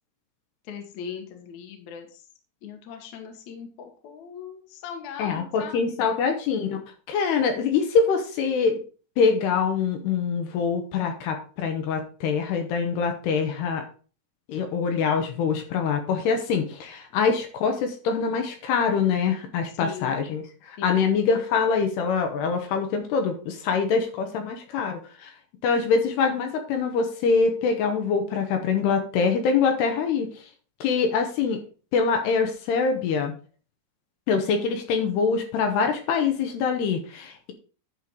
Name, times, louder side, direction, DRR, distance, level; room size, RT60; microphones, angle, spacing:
voice 1, 0.7-2.2 2.6-6.0 19.8-20.1 20.8-21.1, left 7 dB, 60° left, 4 dB, 2.2 m, -39 dB
voice 2, 5.2-6.8 7.1-8.8 9.2-13.8 14.5-25.3 25.6-30.3 30.8-31.6 31.9-33.3 34.3-37.5, left 5 dB, 75° left, 5 dB, 3.0 m, -24 dB
11.0 x 4.5 x 4.6 m, 0.38 s
omnidirectional pair, 5.0 m